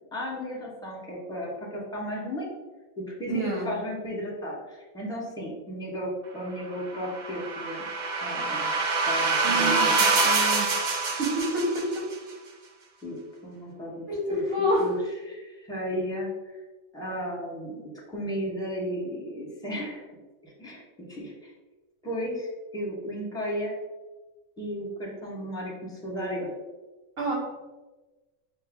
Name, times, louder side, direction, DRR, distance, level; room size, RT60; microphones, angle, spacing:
voice 1, 0.1-2.6 3.0-7.9 8.2-8.7 9.1-9.9 13.0-13.2 13.4-14.4 14.8-15.0 15.2-16.6 16.9-20.1 20.4-20.8 21.1-21.5 22.0-23.7 24.6-26.5, equal, 5° left, -4 dB, 0.8 m, -34 dB
voice 2, 3.3-3.7 9.4-11.9 14.1-14.9 27.2-27.4, right 1 dB, 50° right, -5 dB, 1.3 m, -28 dB
sound 1, 6.9-12.1, right 3 dB, 65° right, 0.4 m, -25 dB
4.9 x 2.2 x 3.6 m, 1.2 s
omnidirectional pair, 1.4 m